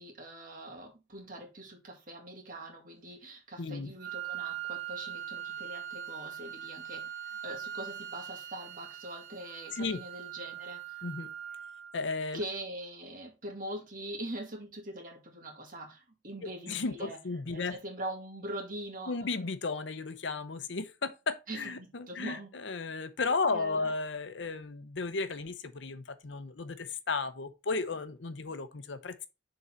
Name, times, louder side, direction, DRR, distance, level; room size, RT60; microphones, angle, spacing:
voice 1, 0.0-11.0 12.3-17.2 17.5-19.2 21.5-22.5 23.5-23.9, right 1 dB, 45° right, 2.0 m, -42 dB
voice 2, 3.6-3.9 9.8-10.0 11.0-11.3 11.9-12.4 16.7-17.8 19.1-29.3, left 4 dB, 75° left, 0.7 m, -34 dB
Wind instrument woodwind instrument, 4.0-12.0, right 11 dB, 80° right, 0.7 m, -41 dB
6.8 x 3.9 x 4.4 m
head